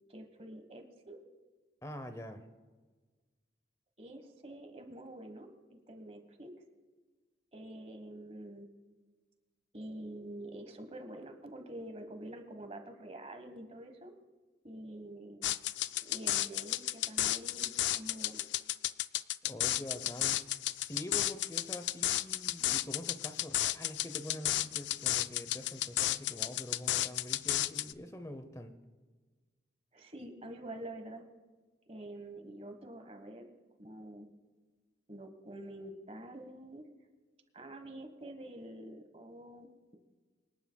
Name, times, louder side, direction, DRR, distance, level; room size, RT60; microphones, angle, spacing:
voice 1, 0.1-1.2 4.0-6.5 7.5-8.7 9.7-14.1 14.6-15.5 16.0-18.4 29.9-31.2 31.9-33.5 33.8-34.3 35.1-36.9 37.5-40.0, right 1 dB, 35° right, 6 dB, 1.4 m, -47 dB
voice 2, 1.8-2.4 19.4-20.4 20.8-28.7, left 1 dB, 15° left, 9 dB, 0.7 m, -45 dB
sound 1, 15.4-27.9, left 14 dB, 75° left, 0.3 m, -33 dB
26.0 x 11.0 x 2.3 m, 1.4 s
head